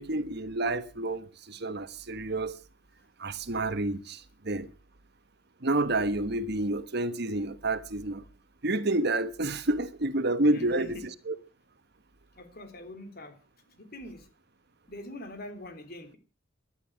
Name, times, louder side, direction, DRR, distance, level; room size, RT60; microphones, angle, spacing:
voice 1, 0.0-2.6 3.2-4.7 5.6-8.2 8.6-11.0 11.3-11.4, right 2 dB, 55° right, 1.2 m, -29 dB
voice 2, 10.5-10.9 12.4-13.4 13.8-14.3 14.9-16.2, left 1 dB, 50° left, 3.7 m, -43 dB
17.5 x 11.5 x 6.3 m
head